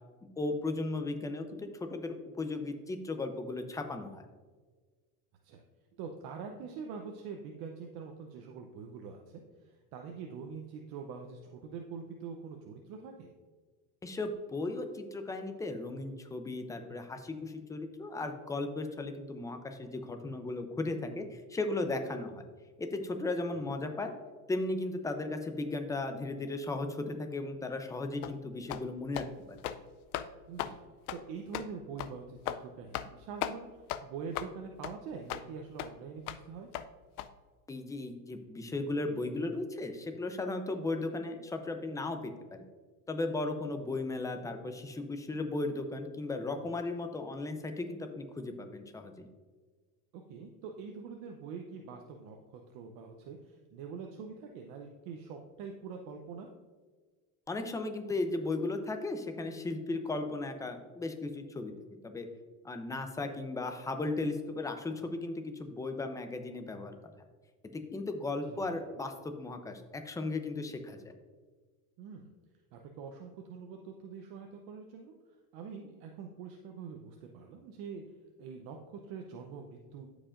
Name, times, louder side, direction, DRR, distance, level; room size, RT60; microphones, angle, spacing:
voice 1, 0.4-4.3 14.0-22.4 22.8-24.1 24.5-29.6 37.7-42.6 43.1-49.3 57.5-61.7 62.0-62.3 62.6-66.9 67.7-71.1, left 2 dB, 10° left, 6 dB, 0.6 m, -36 dB
voice 2, 6.0-13.3 23.5-23.7 30.5-30.8 31.1-36.7 50.1-56.5 68.5-68.7 72.0-72.3 72.7-75.1 75.5-78.0 78.4-80.1, right 5 dB, 55° right, 3 dB, 0.8 m, -44 dB
sound 1, 28.2-28.4 28.7-28.9 29.1-29.3 29.6-29.8 30.1-30.3 30.6-30.7 31.1-31.2 31.5-31.7 32.0-32.1 32.5-32.6 32.9-33.1 33.4-33.6 33.9-34.0 34.3-34.5 34.8-34.9 35.3-35.4 35.8-35.9 36.3-36.4 36.7-36.9 37.2-37.3, left 12 dB, 85° left, 0.6 m, -36 dB
13.5 x 5.0 x 2.5 m, 1.4 s
supercardioid pair, 120°, 44 cm